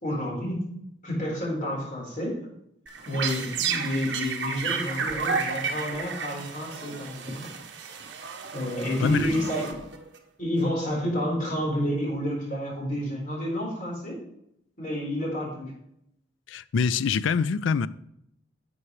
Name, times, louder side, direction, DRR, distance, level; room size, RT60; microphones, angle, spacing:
voice 1, 0.0-0.7 1.0-2.4 3.1-7.5 8.5-9.8 10.4-14.2 14.8-15.7, equal, 45° left, 4.1 m, -30 dB
sound 1, 2.9-10.2, right 5 dB, 70° right, 1.2 m, -32 dB
voice 2, 9.0-9.3 16.5-17.9, left 5 dB, 90° left, 0.4 m, -25 dB
11.5 x 7.9 x 3.2 m
head